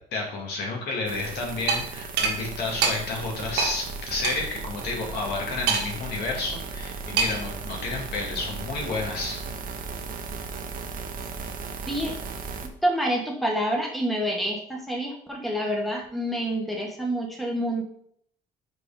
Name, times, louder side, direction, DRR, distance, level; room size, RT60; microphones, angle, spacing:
voice 1, 0.1-9.4, left 3 dB, 75° left, -1 dB, 2.1 m, -31 dB
sound 1, 1.1-12.7, right 4 dB, 55° right, 0.9 m, -36 dB
sound 2, 1.7-1.8 2.2-2.3 2.8-2.9 3.6-3.7 4.2-4.3 5.7-6.1 7.2-7.5, right 5 dB, 80° right, 1.4 m, -24 dB
voice 2, 12.8-17.8, equal, ahead, -1 dB, 1.5 m, -27 dB
4.9 x 4.9 x 4.9 m, 0.65 s
cardioid pair, 110°, 17 cm